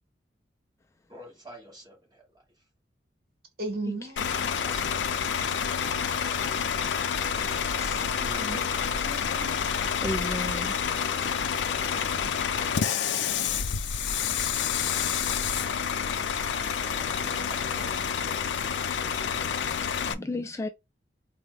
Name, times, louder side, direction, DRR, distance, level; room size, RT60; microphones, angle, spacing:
voice 1, 1.1-2.6 4.6-5.4 8.2-9.0 16.4-18.0, right 1 dB, 25° right, 1.4 m, -49 dB
voice 2, 3.6-4.6 7.4-7.6 8.3-8.6 9.0-9.6, right 2 dB, 60° right, 1.1 m, -36 dB
Bus / Idling, 4.2-20.1, left 7 dB, 80° left, 0.5 m, -28 dB
voice 3, 7.8-8.1 10.0-10.8 19.8-20.7, left 1 dB, 15° left, 0.3 m, -34 dB
4.0 x 2.1 x 3.3 m
head